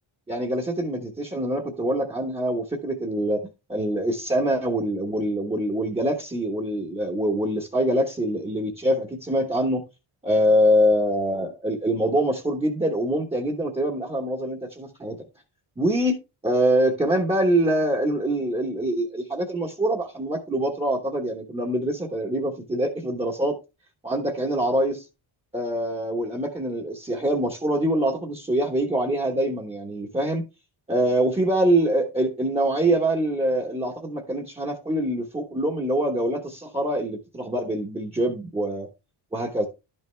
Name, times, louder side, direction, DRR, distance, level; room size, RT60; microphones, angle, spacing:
voice 1, 0.3-9.8 10.2-15.2 15.8-16.2 16.4-23.6 24.0-25.0 25.5-30.4 30.9-38.9 39.3-39.7, right 1 dB, 10° right, 1.1 m, -24 dB
12.0 x 5.5 x 3.2 m
wide cardioid pair, 180°, 49 cm